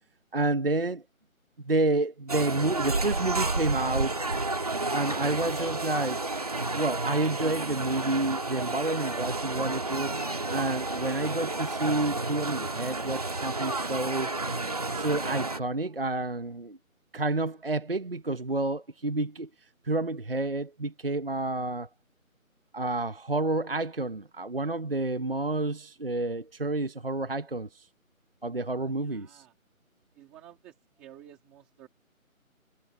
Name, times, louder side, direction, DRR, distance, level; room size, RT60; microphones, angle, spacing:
voice 1, 0.3-1.0 1.6-4.3 4.9-6.2 6.7-10.1 10.5-14.3 14.9-16.8 17.1-19.5 19.8-21.9 22.7-27.9 28.4-29.4, right 2 dB, 40° right, 0.9 m, -29 dB
sound 1, 2.3-15.6, right 2 dB, 25° right, 1.8 m, -31 dB
voice 2, 29.0-29.5 30.1-31.9, right 11 dB, ahead, 2.3 m, -52 dB
figure-of-eight pair, 180°, 42 cm